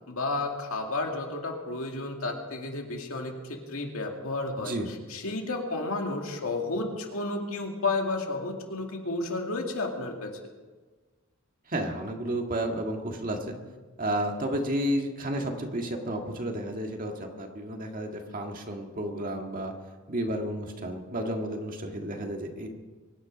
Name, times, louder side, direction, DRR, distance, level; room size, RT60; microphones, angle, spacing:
voice 1, 0.1-4.8 5.1-10.3, left 2 dB, 75° left, 1 dB, 2.4 m, -32 dB
voice 2, 4.6-4.9 11.7-13.6 14.0-19.7 20.1-22.7, right 1 dB, 40° right, 3 dB, 1.8 m, -32 dB
23.5 x 10.0 x 5.1 m, 1.3 s
head